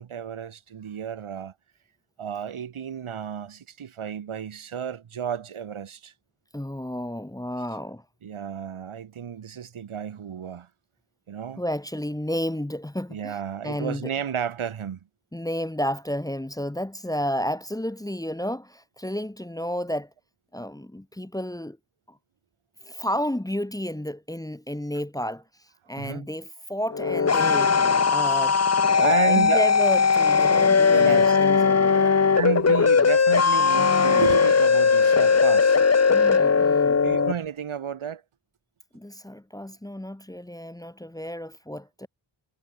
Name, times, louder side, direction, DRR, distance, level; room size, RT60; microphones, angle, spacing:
voice 1, 0.0-1.5 2.2-6.1 8.2-10.7 11.3-11.6 13.1-15.0 26.0-26.3 29.0-29.6 30.5-31.4 31.9-32.0 32.3-35.8 36.9-38.2, right 8 dB, 85° right, 7.1 m, -32 dB
voice 2, 6.5-8.0 11.6-13.4 13.6-14.1 15.3-20.1 20.5-21.8 22.1-22.2 22.8-25.4 25.9-27.7 28.1-28.6 28.9-32.1 36.1-37.0 38.9-42.1, equal, 5° left, 1.6 m, -31 dB
sound 1, 26.9-37.3, left 5 dB, 30° left, 1.4 m, -19 dB
wide cardioid pair, 120°, 48 cm